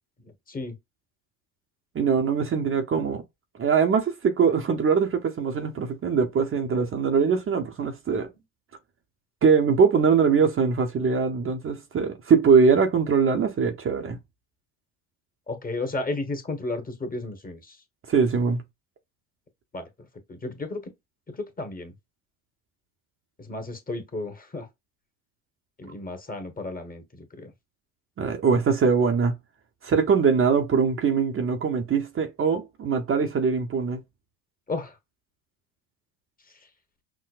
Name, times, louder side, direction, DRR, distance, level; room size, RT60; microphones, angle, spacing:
voice 1, 1.9-3.2 3.6-8.3 9.4-14.2 18.1-18.6 28.2-29.3 29.8-34.0, right 5 dB, 30° right, 0.8 m, -22 dB
voice 2, 15.5-17.7 19.7-19.9 20.3-20.8 21.4-21.9 23.5-24.7 25.8-27.5 34.7-34.9, left 2 dB, 20° left, 1.3 m, -33 dB
5.9 x 2.0 x 2.4 m
hypercardioid pair, 75°, 43 cm